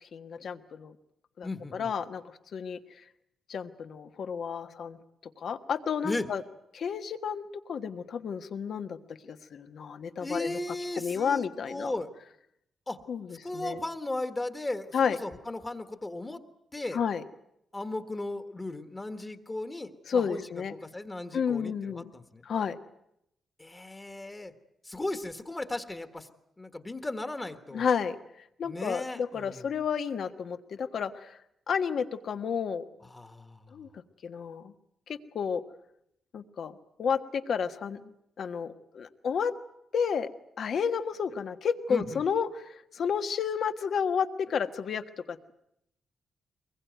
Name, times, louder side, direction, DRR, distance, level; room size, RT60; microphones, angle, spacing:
voice 1, 0.0-0.9 1.4-2.8 3.5-5.0 5.4-6.4 6.7-10.6 11.0-11.9 13.1-13.8 14.9-15.2 16.9-17.2 20.1-20.7 21.3-22.1 22.4-22.8 27.7-28.2 28.6-31.4 31.7-32.8 33.7-34.7 35.1-35.6 36.3-39.5 39.9-40.3 40.6-45.5, left 6 dB, 55° left, 9 dB, 1.4 m, -31 dB
voice 2, 1.4-1.9 6.0-6.2 10.2-12.1 12.9-13.0 13.4-16.4 16.7-17.0 17.7-20.4 20.7-22.4 23.6-24.5 24.8-26.3 26.6-27.9 28.6-29.7 33.1-33.7 41.9-42.2, left 2 dB, 15° left, 9 dB, 1.6 m, -36 dB
23.5 x 21.0 x 9.3 m, 0.78 s
cardioid pair, 135°, 0 cm